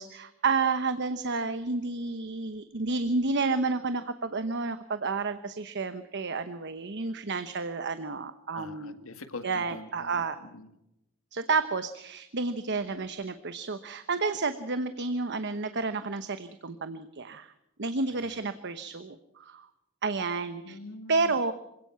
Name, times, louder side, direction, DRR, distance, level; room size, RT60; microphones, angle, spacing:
voice 1, 0.0-9.0 9.4-10.4 11.3-17.5 17.8-19.7 20.0-20.8 21.1-21.5, right 4 dB, 55° right, 10 dB, 1.0 m, -30 dB
voice 2, 8.5-10.7 18.1-18.4 20.6-21.4, left 3 dB, 65° left, 9 dB, 1.9 m, -44 dB
27.0 x 17.0 x 5.8 m, 0.86 s
head